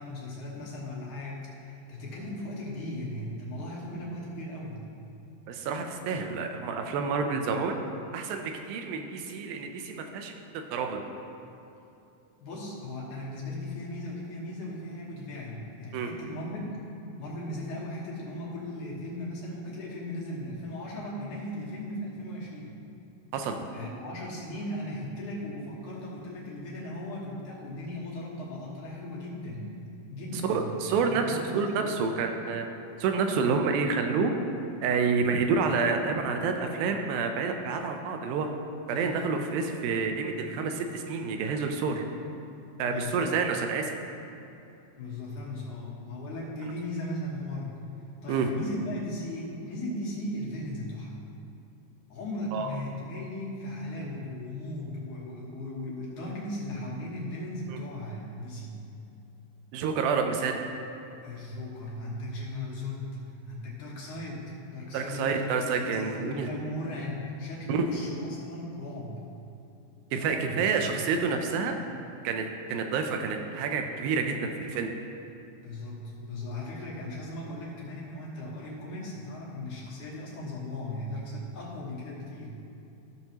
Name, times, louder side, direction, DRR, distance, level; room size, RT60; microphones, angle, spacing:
voice 1, 0.0-4.9 12.4-16.8 17.2-22.7 23.7-29.7 30.1-32.1 38.9-39.2 42.9-43.3 45.0-47.8 48.2-51.2 52.1-58.8 61.2-63.2 63.5-64.5 64.7-69.3 70.4-70.6 75.6-82.6, left 1 dB, 65° left, -5 dB, 2.6 m, -37 dB
voice 2, 5.5-7.8 8.1-11.0 15.9-16.1 23.3-23.6 30.4-32.7 33.0-34.3 34.8-38.5 38.9-42.0 42.8-44.0 48.3-48.6 52.5-52.7 59.7-60.6 64.9-66.5 67.7-67.9 70.1-71.8 72.2-74.9, right 5 dB, 85° right, 4 dB, 2.4 m, -28 dB
14.0 x 6.2 x 2.9 m, 2.8 s
omnidirectional pair, 4.2 m